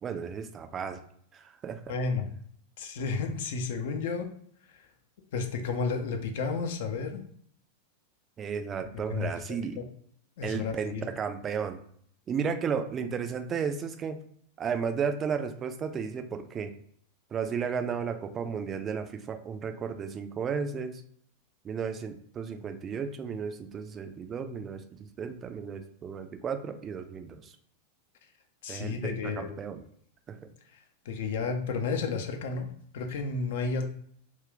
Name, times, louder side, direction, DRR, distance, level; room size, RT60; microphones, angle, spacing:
voice 1, 0.0-1.0 1.3-1.9 8.4-9.8 10.4-11.8 12.3-14.2 14.6-16.7 17.3-21.0 21.6-27.5 28.7-29.8 30.3-30.4, right 6 dB, 25° right, 7 dB, 0.3 m, -34 dB
voice 2, 1.9-2.3 2.8-4.3 4.7-4.9 5.3-7.2 8.8-9.3 9.8-9.9 10.4-11.1 28.6-29.5 30.7-30.8 31.1-33.9, left 4 dB, 55° left, 4 dB, 0.5 m, -32 dB
2.4 x 2.2 x 3.6 m, 0.62 s
figure-of-eight pair, 90°, 0 cm